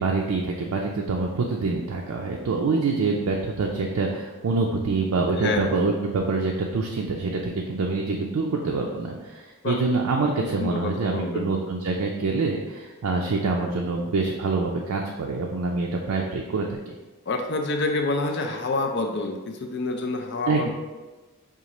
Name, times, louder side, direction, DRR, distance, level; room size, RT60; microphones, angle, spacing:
voice 1, 0.0-17.0 20.5-20.7, right 3 dB, 90° right, 0 dB, 0.4 m, -26 dB
voice 2, 5.4-5.8 9.6-9.8 10.3-11.5 17.3-20.7, left 3 dB, 50° left, 4 dB, 0.4 m, -28 dB
5.0 x 2.4 x 3.0 m, 1.2 s
head